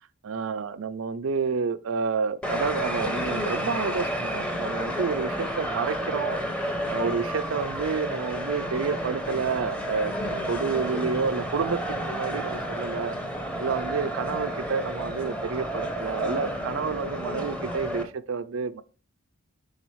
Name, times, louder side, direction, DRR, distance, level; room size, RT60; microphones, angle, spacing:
voice 1, 0.2-6.4 6.9-13.1 13.6-18.8, right 5 dB, 70° right, 0.5 m, -29 dB
sound 1, 2.4-18.0, equal, 5° left, 0.8 m, -31 dB
10.0 x 3.8 x 3.3 m
head